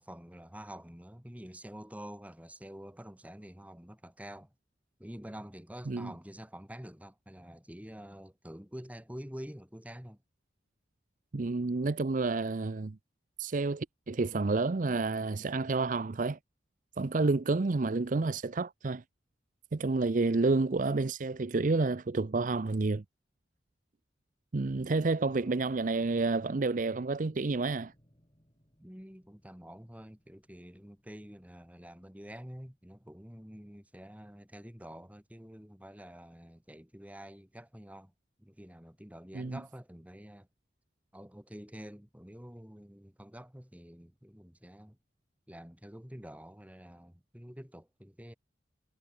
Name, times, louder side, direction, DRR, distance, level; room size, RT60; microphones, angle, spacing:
voice 1, 0.0-4.5 5.0-10.2 28.8-38.1 38.4-40.5 41.1-45.0 45.5-48.3, equal, 10° right, 3.1 m, -48 dB
voice 2, 11.3-13.0 13.4-16.4 17.0-19.0 19.7-23.0 24.5-27.9 39.3-39.6, right 3 dB, 45° right, 0.6 m, -29 dB
sound 1, 25.3-32.6, equal, 30° left, 7.8 m, -61 dB
head